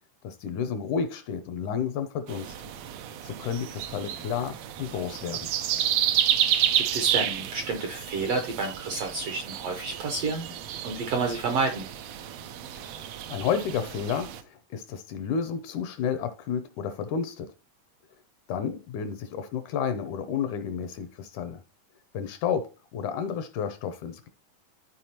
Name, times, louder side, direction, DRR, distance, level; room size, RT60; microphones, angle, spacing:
voice 1, 0.2-2.6 3.2-5.5 12.8-17.5 18.5-21.6 22.1-24.3, left 7 dB, 75° left, 1.9 m, -31 dB
sound 1, 2.3-14.4, right 10 dB, 90° right, 1.4 m, -30 dB
voice 2, 6.8-10.5 10.8-11.9, right 3 dB, 70° right, 1.5 m, -30 dB
13.0 x 4.5 x 2.8 m
omnidirectional pair, 3.9 m